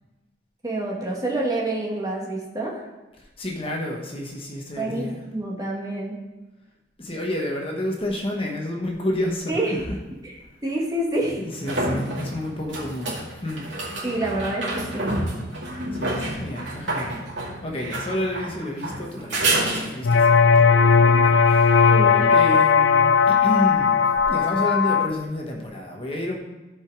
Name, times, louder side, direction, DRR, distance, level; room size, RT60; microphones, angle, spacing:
voice 1, 0.6-2.9 4.8-6.2 9.5-9.8 10.2-10.3 10.6-11.4 14.0-15.2 21.9-22.3, right 1 dB, 20° right, -2 dB, 1.6 m, -27 dB
voice 2, 3.2-5.2 7.0-9.8 10.4-10.6 11.4-13.7 15.9-21.9 22.3-26.4, left 1 dB, 30° left, 0 dB, 1.2 m, -30 dB
sound 1, 9.8-9.9 11.2-20.3 23.7-23.8, right 2 dB, 85° right, 2.3 m, -29 dB
sound 2, 20.0-25.1, left 5 dB, 80° left, 0.5 m, -17 dB
13.5 x 5.0 x 4.6 m, 1.1 s
head